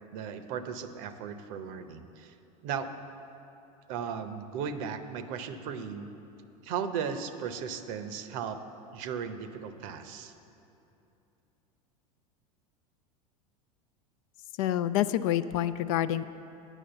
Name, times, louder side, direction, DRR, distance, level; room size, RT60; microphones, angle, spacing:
voice 1, 0.1-2.3 2.6-2.9 3.9-6.1 6.6-8.6 8.9-10.3, right 7 dB, 60° right, 10 dB, 0.7 m, -36 dB
voice 2, 14.6-16.2, left 12 dB, 65° left, 13 dB, 0.4 m, -27 dB
9.1 x 6.3 x 7.8 m, 2.8 s
hypercardioid pair, 90°, 20 cm